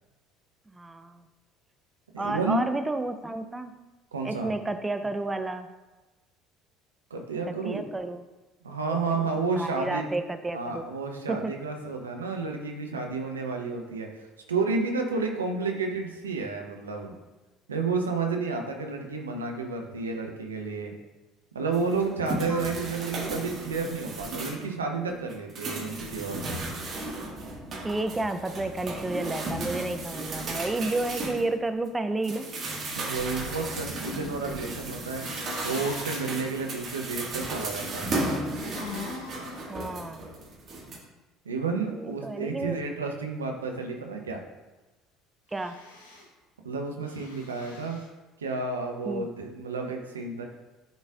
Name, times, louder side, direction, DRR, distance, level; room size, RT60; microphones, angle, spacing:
voice 1, 0.7-1.2 2.2-3.8 4.2-5.7 7.5-8.2 8.9-9.2 9.6-10.8 11.3-11.5 22.5-22.7 27.8-32.5 39.7-40.2 41.9-42.8 45.5-45.8 49.1-49.3, right 2 dB, 15° right, 9 dB, 0.4 m, -31 dB
voice 2, 2.1-2.6 4.1-4.5 7.1-7.8 8.6-10.0 10.5-17.1 17.7-20.9 21.5-26.6 33.0-35.2 35.6-38.1 41.4-44.4 46.6-48.0 48.4-50.5, right 4 dB, 85° right, 2 dB, 0.7 m, -31 dB
sound 1, 21.7-24.7 25.1-31.9 32.2-41.0, right 2 dB, 45° right, 1.6 m, -35 dB
sound 2, 35.0-36.4 38.2-39.6 45.5-46.3 47.0-48.1, left 3 dB, 85° left, 1.0 m, -42 dB
10.5 x 4.0 x 2.4 m, 1.1 s
hypercardioid pair, 60°, 0 cm